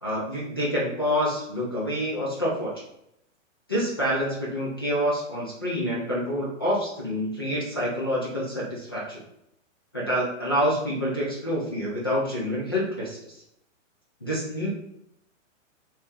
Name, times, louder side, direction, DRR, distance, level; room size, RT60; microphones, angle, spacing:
voice 1, 0.0-2.7 3.7-9.2 9.9-13.2 14.2-14.7, equal, 20° left, -6 dB, 0.3 m, -27 dB
3.0 x 2.8 x 3.4 m, 0.78 s
hypercardioid pair, 155°, 40 cm